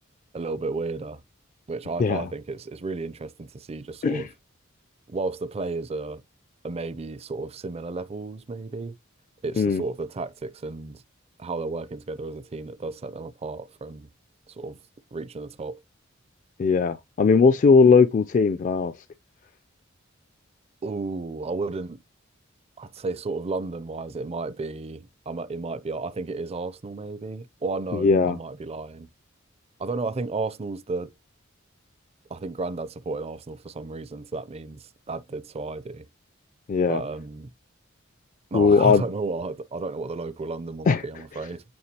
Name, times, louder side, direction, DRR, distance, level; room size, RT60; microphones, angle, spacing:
voice 1, 0.3-1.2 1.7-4.3 5.1-6.2 6.6-9.0 9.4-11.0 11.4-14.1 14.5-14.8 15.1-15.8 20.8-22.0 22.8-29.1 29.8-31.1 32.3-36.1 36.9-37.5 38.5-41.6, right 3 dB, 30° right, 0.4 m, -33 dB
voice 2, 16.6-18.9 27.9-28.4 36.7-37.0 38.5-39.0 40.9-41.0, left 5 dB, 40° left, 0.3 m, -19 dB
8.7 x 3.8 x 2.8 m
head